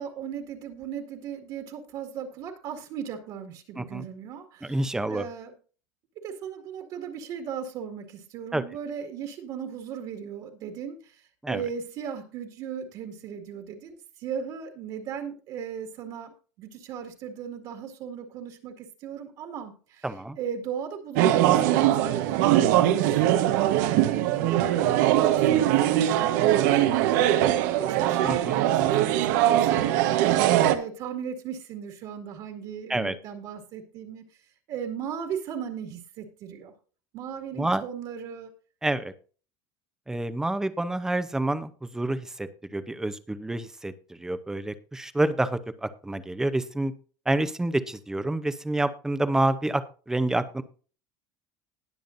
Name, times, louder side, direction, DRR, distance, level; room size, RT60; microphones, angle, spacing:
voice 1, 0.0-4.8 5.1-5.5 6.2-20.1 20.4-30.2 30.6-34.2 34.7-36.7 37.1-38.5, right 8 dB, 45° right, 4 dB, 2.1 m, -37 dB
voice 2, 4.6-5.3 8.5-8.6 11.4-11.6 20.0-20.4 28.2-28.6 32.9-33.1 37.5-37.8 38.8-39.1 40.1-46.9 47.3-50.6, right 2 dB, 5° right, 12 dB, 0.7 m, -28 dB
sound 1, 21.2-30.7, right 12 dB, 75° right, 1.2 m, -21 dB
20.0 x 7.0 x 2.6 m, 0.38 s
cardioid pair, 160°, 10 cm